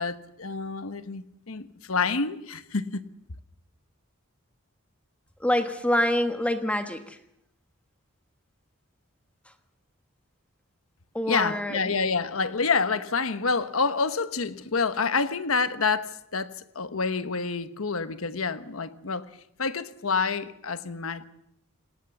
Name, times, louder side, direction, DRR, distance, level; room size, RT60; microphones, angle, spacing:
voice 1, 0.0-3.0 11.3-19.3 19.6-21.2, left 4 dB, 80° left, 1.1 m, -28 dB
voice 2, 5.4-7.2 11.1-11.9, left 1 dB, 5° left, 1.3 m, -26 dB
28.5 x 19.5 x 7.0 m
head